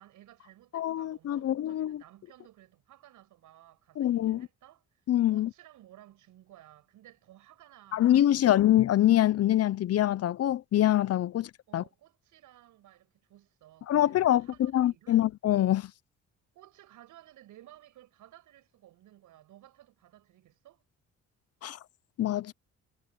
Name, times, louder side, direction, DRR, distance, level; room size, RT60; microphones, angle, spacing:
voice 1, 0.0-5.0 5.3-8.6 11.3-15.3 16.5-20.8, right 13 dB, 85° right, 7.6 m, -57 dB
voice 2, 0.7-2.0 4.0-4.5 5.1-5.5 7.9-11.5 11.7-11.8 13.9-14.5 14.7-15.9 21.6-21.8 22.2-22.5, left 12 dB, 55° left, 0.6 m, -24 dB
cardioid pair, 90°, 30 cm